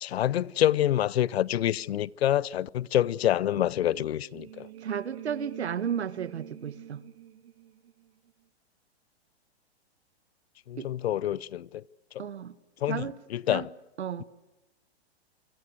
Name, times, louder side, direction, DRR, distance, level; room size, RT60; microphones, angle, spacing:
voice 1, 0.0-4.7 10.7-11.8 12.8-13.7, left 12 dB, 70° left, 0.8 m, -27 dB
sound 1, 3.5-8.3, right 12 dB, 65° right, 2.1 m, -46 dB
voice 2, 4.8-7.0 10.8-10.9 12.2-12.5 12.9-13.2 13.5-13.7 14.0-14.2, right 8 dB, 85° right, 1.8 m, -33 dB
27.5 x 25.5 x 6.6 m
hypercardioid pair, 125°, 32 cm